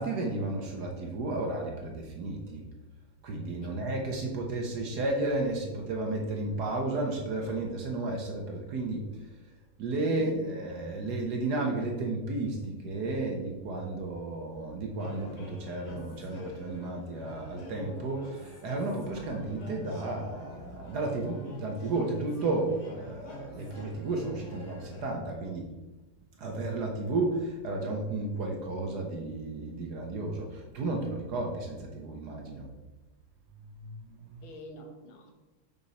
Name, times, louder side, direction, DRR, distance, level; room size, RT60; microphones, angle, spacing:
voice 1, 0.0-2.7 3.2-9.4 9.8-25.8 26.4-32.7 33.5-34.4, right 2 dB, 60° right, 1 dB, 1.2 m, -33 dB
voice 2, 10.1-10.6 34.4-35.3, left 2 dB, 80° left, 3 dB, 1.8 m, -46 dB
sound 1, 15.0-25.0, left 2 dB, 40° left, 1.2 m, -46 dB
6.0 x 5.3 x 4.1 m, 1.1 s
omnidirectional pair, 2.3 m